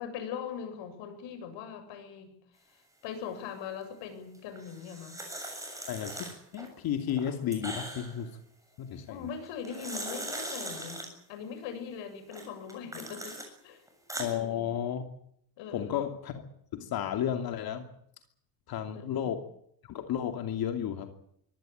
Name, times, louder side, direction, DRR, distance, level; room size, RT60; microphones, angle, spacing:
voice 1, 0.0-2.4 3.0-5.2 9.1-13.4 13.6-13.8 14.3-14.7 15.6-16.1 18.9-19.3, left 7 dB, 65° left, 8 dB, 7.8 m, -41 dB
sound 1, 4.5-6.7 7.1-8.2 9.4-11.1 12.3-13.5 13.9-14.3, right 1 dB, 5° right, 7.1 m, -40 dB
voice 2, 5.9-8.3 8.8-9.2 14.2-15.1 15.7-16.4 16.7-17.9 18.7-19.4 19.8-21.1, left 9 dB, 50° left, 6 dB, 2.7 m, -33 dB
24.0 x 17.5 x 8.8 m, 0.69 s
cardioid pair, 155°, 48 cm